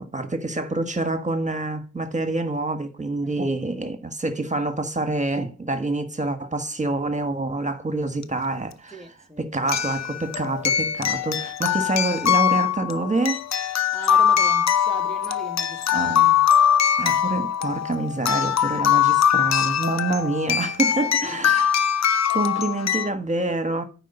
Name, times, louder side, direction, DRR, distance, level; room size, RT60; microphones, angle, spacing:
voice 1, 0.0-8.9 9.4-13.4 15.9-16.4 17.0-21.8 22.3-23.8, right 2 dB, 25° right, 1.5 m, -27 dB
sound 1, 8.2-8.3 9.7-23.1, left 9 dB, 60° left, 0.7 m, -22 dB
voice 2, 8.9-9.7 13.9-16.1 20.8-21.4, right 1 dB, ahead, 1.2 m, -40 dB
9.2 x 4.7 x 6.8 m
cardioid pair, 55°, 31 cm